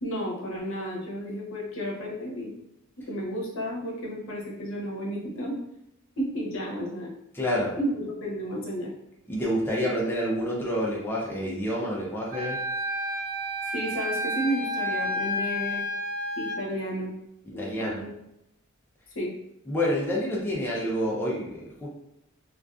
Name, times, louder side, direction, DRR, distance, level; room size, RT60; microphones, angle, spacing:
voice 1, 0.0-2.5 3.1-5.6 6.2-7.1 7.8-8.9 13.7-15.8 16.4-17.1 17.5-18.1 19.1-19.3, equal, 65° left, -3 dB, 0.7 m, -32 dB
voice 2, 7.3-7.7 9.3-12.6 17.6-18.0 19.7-21.9, equal, 10° left, -4 dB, 0.4 m, -28 dB
Wind instrument woodwind instrument, 12.3-16.6, equal, 45° right, 0.6 m, -30 dB
2.4 x 2.3 x 2.3 m, 0.85 s
head